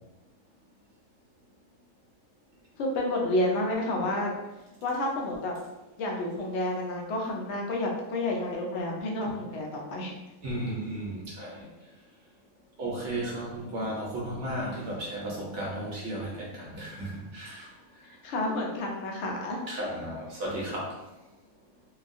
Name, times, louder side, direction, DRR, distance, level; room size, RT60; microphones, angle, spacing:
voice 1, 2.8-4.4 4.8-5.5 6.0-10.2 18.2-19.6, left 1 dB, 65° left, 0 dB, 0.7 m, -30 dB
voice 2, 10.4-11.7 12.8-17.7 19.7-20.9, right 1 dB, 60° right, -4 dB, 0.8 m, -34 dB
2.9 x 2.3 x 2.5 m, 1.0 s
omnidirectional pair, 1.7 m